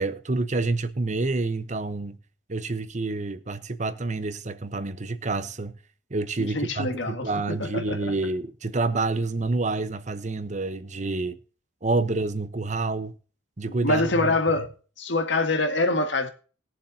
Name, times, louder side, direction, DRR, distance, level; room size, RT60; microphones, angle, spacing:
voice 1, 0.0-2.2 2.5-5.8 6.1-11.4 11.8-13.2 13.6-14.7, right 3 dB, 40° right, 0.9 m, -28 dB
voice 2, 6.4-8.1 13.8-14.7 15.0-16.3, left 2 dB, 70° left, 1.8 m, -25 dB
20.5 x 7.3 x 2.8 m
head